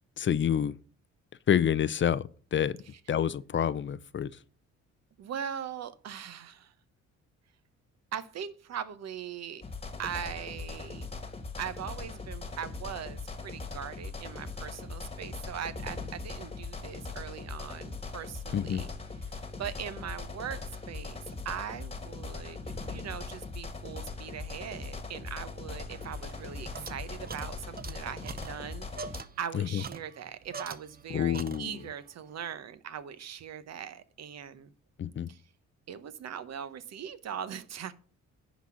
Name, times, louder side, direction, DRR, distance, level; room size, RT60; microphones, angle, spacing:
voice 1, 0.2-0.8 1.5-2.8 3.1-4.3 18.5-18.8 29.5-29.8 31.1-31.8 35.0-35.3, left 9 dB, 40° left, 0.5 m, -28 dB
voice 2, 5.2-6.7 8.1-9.6 10.0-11.0 11.6-18.9 19.3-22.6 22.9-34.7 35.3-35.4 35.9-37.9, right 8 dB, 60° right, 0.9 m, -40 dB
sound 1, 9.6-29.2, left 3 dB, 20° left, 1.5 m, -40 dB
sound 2, 25.9-31.1 31.3-32.0, right 5 dB, 30° right, 0.8 m, -44 dB
10.5 x 4.1 x 6.2 m
cardioid pair, 90°, 30 cm